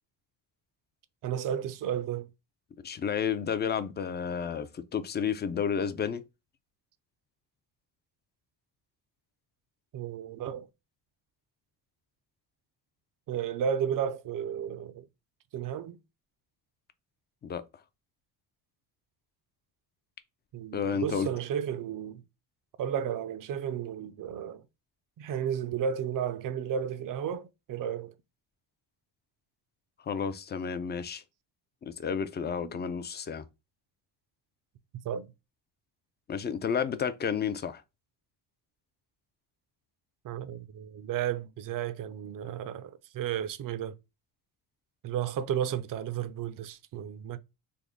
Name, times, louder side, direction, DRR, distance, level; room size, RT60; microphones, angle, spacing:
voice 1, 1.2-2.3 9.9-10.7 13.3-15.1 15.5-16.0 20.5-22.2 22.8-24.6 25.2-28.1 32.6-32.9 35.0-35.3 40.2-43.9 45.0-47.4, right 9 dB, 50° right, 0.5 m, -33 dB
voice 2, 2.8-6.2 17.4-17.6 20.7-21.3 30.0-31.2 31.8-33.4 36.3-37.8, left 7 dB, 25° left, 0.4 m, -31 dB
3.5 x 2.1 x 3.6 m
cardioid pair, 100°, 42 cm